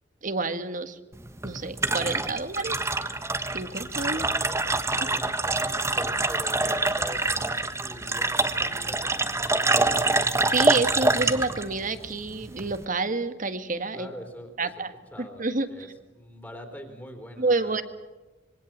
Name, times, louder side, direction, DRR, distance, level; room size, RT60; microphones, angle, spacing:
voice 1, 0.2-1.0 1.4-2.8 3.5-4.3 10.5-14.1 14.6-14.9 15.4-15.7 17.4-17.8, right 3 dB, 45° right, 10 dB, 1.7 m, -28 dB
sound 1, 1.1-12.9, right 2 dB, 15° right, 1.3 m, -26 dB
voice 2, 4.2-9.2 13.9-14.5 15.1-17.8, equal, 10° left, 4 dB, 3.7 m, -44 dB
26.0 x 23.5 x 7.4 m, 1.2 s
head